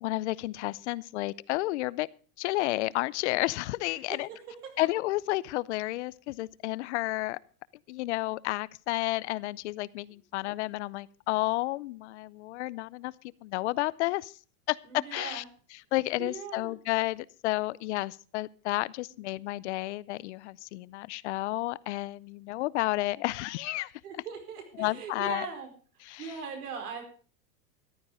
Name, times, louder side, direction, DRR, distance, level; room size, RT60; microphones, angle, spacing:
voice 1, 0.0-2.1 2.4-4.3 4.8-7.4 7.9-13.1 13.4-14.3 14.7-15.4 15.7-23.9 24.8-25.5 26.0-26.4, left 19 dB, 50° left, 21 dB, 0.5 m, -31 dB
voice 2, 14.9-15.4 16.2-16.7 24.0-25.7 26.2-27.0, right 6 dB, 80° right, 4 dB, 4.9 m, -39 dB
14.0 x 11.0 x 5.0 m, 0.39 s
supercardioid pair, 150°, 45 cm